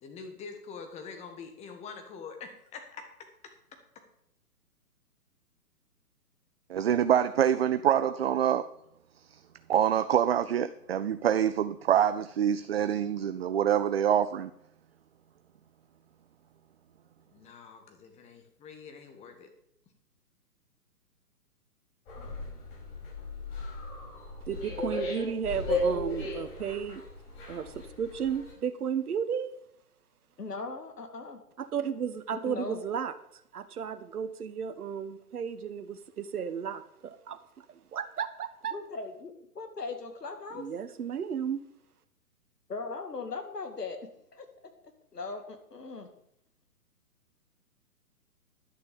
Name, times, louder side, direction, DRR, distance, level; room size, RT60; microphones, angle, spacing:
voice 1, 0.0-3.0 17.3-19.5, left 5 dB, 15° left, 5 dB, 1.4 m, -45 dB
voice 2, 6.7-8.7 9.3-9.4 9.7-14.5, right 9 dB, 45° right, 11 dB, 0.4 m, -25 dB
sound 1, 22.1-28.5, left 1 dB, 30° left, 5.3 m, -35 dB
voice 3, 24.5-27.0 27.5-29.6 31.6-33.1 33.5-37.4 37.7-38.7 40.5-41.6, right 7 dB, 70° right, 10 dB, 1.2 m, -34 dB
voice 4, 30.4-31.4 32.3-32.8 38.7-40.7 42.7-44.0 44.3-44.5 45.1-46.1, left 4 dB, 85° left, 6 dB, 2.3 m, -39 dB
11.5 x 6.6 x 6.9 m, 0.75 s
hypercardioid pair, 135°, 46 cm